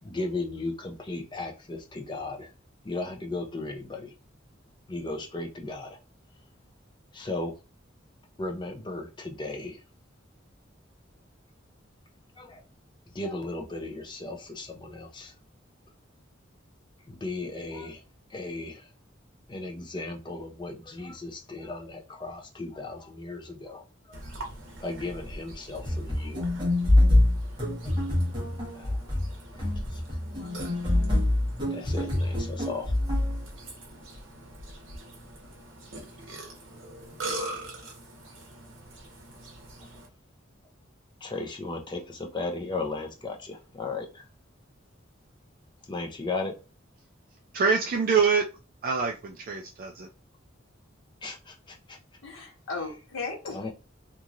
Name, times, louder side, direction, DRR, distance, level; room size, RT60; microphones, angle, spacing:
voice 1, 0.0-2.5 2.8-4.1 4.9-6.0 7.1-7.6 8.4-9.8 12.4-12.6 13.1-15.3 17.1-18.0 18.3-18.9 19.5-23.8 24.1-24.3 24.8-26.7 27.8-28.0 28.7-29.0 29.5-30.0 30.4-30.5 31.7-32.9 39.8-39.9 41.2-44.2 45.8-46.5 51.2-52.0 53.5-53.7, left 2 dB, 25° left, 0.6 m, -36 dB
Burping eructation, 24.1-40.1, right 1 dB, 75° right, 1.0 m, -42 dB
sound 1, 25.8-33.4, left 1 dB, 25° right, 1.3 m, -25 dB
voice 2, 47.5-48.4 48.8-50.1, right 5 dB, 45° right, 0.4 m, -25 dB
voice 3, 52.2-53.7, left 4 dB, 80° left, 0.7 m, -36 dB
3.0 x 2.6 x 2.5 m
head